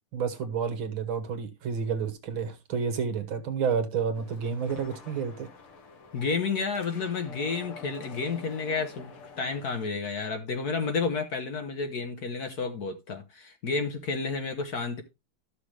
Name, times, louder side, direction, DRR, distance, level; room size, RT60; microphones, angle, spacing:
voice 1, 0.1-5.5, right 6 dB, 65° right, 2.0 m, -30 dB
sound 1, 4.1-9.9, left 5 dB, 85° left, 2.5 m, -48 dB
voice 2, 6.1-9.1 9.4-15.0, left 4 dB, 55° left, 1.3 m, -31 dB
13.0 x 6.3 x 3.2 m
omnidirectional pair, 2.4 m